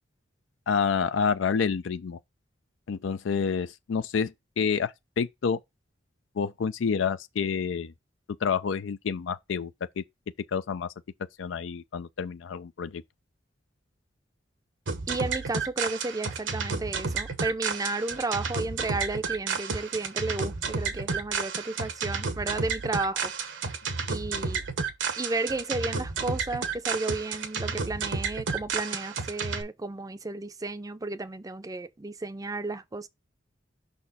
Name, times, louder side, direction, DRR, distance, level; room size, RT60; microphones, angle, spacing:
voice 1, 0.7-2.2 2.9-5.6 6.4-7.9 8.4-9.7 10.0-10.1 10.5-10.9 11.4-13.0, left 6 dB, 80° left, 0.4 m, -28 dB
sound 1, 14.9-29.6, right 5 dB, 75° right, 1.0 m, -31 dB
voice 2, 15.1-23.3 24.1-24.6 25.2-33.1, right 2 dB, 20° right, 0.5 m, -33 dB
5.8 x 4.3 x 4.0 m
head